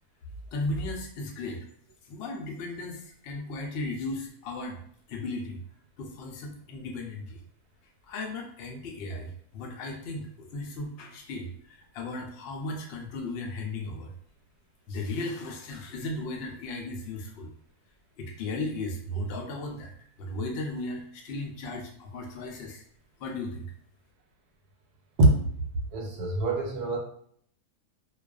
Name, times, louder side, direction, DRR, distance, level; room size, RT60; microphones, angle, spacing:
voice 1, 0.5-1.6 2.1-4.8 5.1-5.6 6.0-7.4 8.0-14.1 14.9-17.5 18.2-19.9 20.2-22.8 23.2-23.7, left 2 dB, 75° left, 1 dB, 0.5 m, -36 dB
voice 2, 25.9-27.0, right 2 dB, 80° right, 2 dB, 1.1 m, -23 dB
2.4 x 2.3 x 2.3 m, 0.63 s
omnidirectional pair, 1.7 m